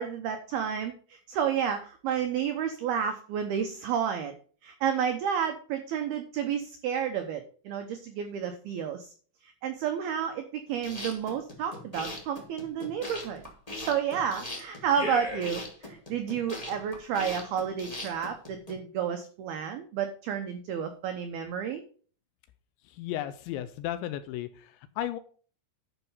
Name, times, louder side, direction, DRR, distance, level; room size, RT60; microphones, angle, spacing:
voice 1, 0.0-4.3 4.6-9.1 9.4-13.4 13.8-21.8, right 8 dB, 85° right, 7 dB, 2.2 m, -31 dB
sound 1, 10.7-18.7, left 2 dB, 55° left, 0.4 m, -39 dB
voice 2, 22.9-25.2, left 12 dB, 85° left, 11 dB, 2.7 m, -35 dB
11.5 x 5.7 x 5.4 m, 0.43 s
omnidirectional pair, 5.7 m